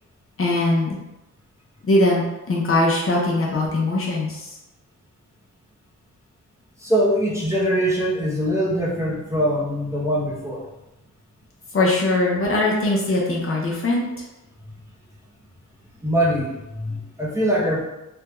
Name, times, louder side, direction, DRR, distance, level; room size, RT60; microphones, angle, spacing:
voice 1, 0.4-1.0 1.8-4.5 11.7-14.0, left 2 dB, 40° left, -3 dB, 0.6 m, -21 dB
voice 2, 6.8-10.6 16.0-17.8, equal, 10° right, -6 dB, 0.6 m, -22 dB
3.4 x 2.2 x 3.0 m, 0.96 s
wide cardioid pair, 135°, 33 cm